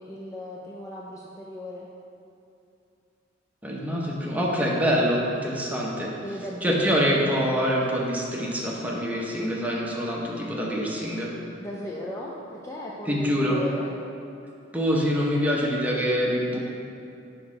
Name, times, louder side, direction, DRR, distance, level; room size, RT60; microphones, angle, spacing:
voice 1, 0.0-1.9 6.2-6.8 11.6-13.9, left 1 dB, 15° left, -4 dB, 0.4 m, -36 dB
voice 2, 3.6-6.1 6.6-11.3 13.1-13.6 14.7-16.6, equal, 10° right, -4 dB, 0.8 m, -25 dB
6.2 x 3.6 x 4.9 m, 2.7 s
head